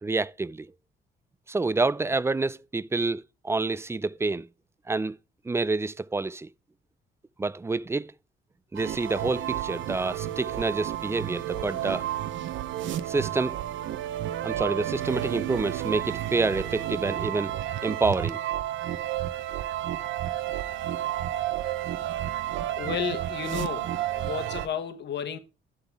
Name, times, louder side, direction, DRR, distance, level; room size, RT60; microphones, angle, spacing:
voice 1, 0.0-0.7 1.5-4.5 4.9-5.1 5.5-6.5 7.4-8.1 8.7-12.1 13.1-13.6 14.4-17.5 17.8-18.4, right 3 dB, 15° right, 0.4 m, -28 dB
sound 1, 8.7-24.7, right 12 dB, 75° right, 0.7 m, -31 dB
voice 2, 22.8-25.4, left 8 dB, 60° left, 1.1 m, -33 dB
11.0 x 3.9 x 4.6 m
cardioid pair, 90°, 20 cm